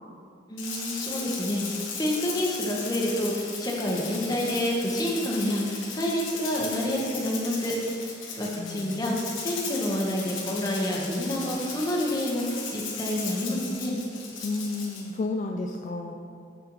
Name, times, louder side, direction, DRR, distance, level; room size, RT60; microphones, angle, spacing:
voice 1, 0.5-9.2 9.4-14.0, equal, 20° left, -2 dB, 1.0 m, -28 dB
Rattle (instrument), 0.6-15.1, left 5 dB, 85° left, 1.3 m, -37 dB
voice 2, 8.6-9.1 14.4-16.2, left 3 dB, 40° left, 2 dB, 0.3 m, -32 dB
7.5 x 6.7 x 3.0 m, 2.4 s
head